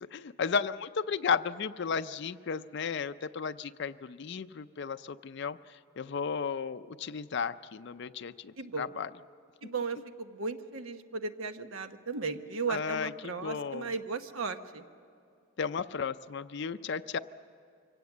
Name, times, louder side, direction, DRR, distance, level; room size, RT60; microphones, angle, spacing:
voice 1, 0.0-5.6 6.0-9.1 12.7-13.9 15.6-17.2, left 6 dB, 55° left, 11 dB, 0.4 m, -34 dB
voice 2, 8.6-8.9 9.6-14.8, right 4 dB, 80° right, 8 dB, 1.1 m, -36 dB
24.5 x 17.0 x 7.3 m, 2.5 s
head